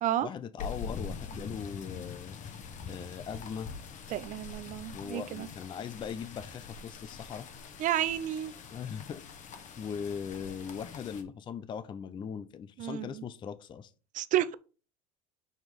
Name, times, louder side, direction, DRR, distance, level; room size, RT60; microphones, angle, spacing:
voice 1, 0.2-2.4 2.9-3.7 4.9-7.5 8.7-9.2 9.8-13.9, left 7 dB, 25° left, 0.4 m, -39 dB
sound 1, 0.6-11.2, left 5 dB, 40° left, 1.1 m, -44 dB
voice 2, 4.1-5.5 7.8-8.5 12.8-13.2 14.1-14.5, right 12 dB, 40° right, 0.5 m, -31 dB
6.4 x 3.0 x 5.1 m
supercardioid pair, 100°, 20 cm